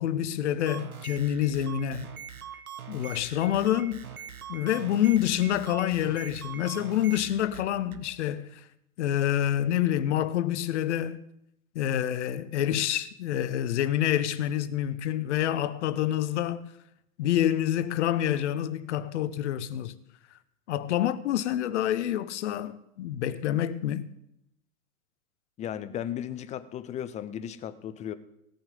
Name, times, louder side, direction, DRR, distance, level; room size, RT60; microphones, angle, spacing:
voice 1, 0.0-2.1 2.9-4.1 4.5-8.7 9.0-11.2 11.7-16.7 17.2-19.9 20.7-24.1, left 11 dB, 50° left, 1.1 m, -27 dB
sound 1, 0.6-8.0, right 8 dB, 75° right, 1.2 m, -43 dB
voice 2, 25.6-28.1, left 10 dB, 15° left, 0.6 m, -35 dB
17.5 x 5.9 x 8.6 m
figure-of-eight pair, 100°, 43 cm